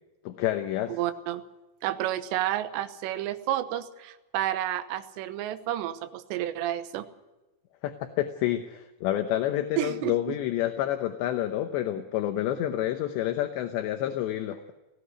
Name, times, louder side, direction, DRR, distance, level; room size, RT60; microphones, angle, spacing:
voice 1, 0.3-1.0 7.8-14.7, left 12 dB, 75° left, 7 dB, 2.9 m, -29 dB
voice 2, 0.9-1.4 1.8-7.1 9.8-10.4, right 13 dB, 75° right, 10 dB, 3.0 m, -30 dB
18.5 x 16.0 x 9.7 m, 1.0 s
omnidirectional pair, 5.6 m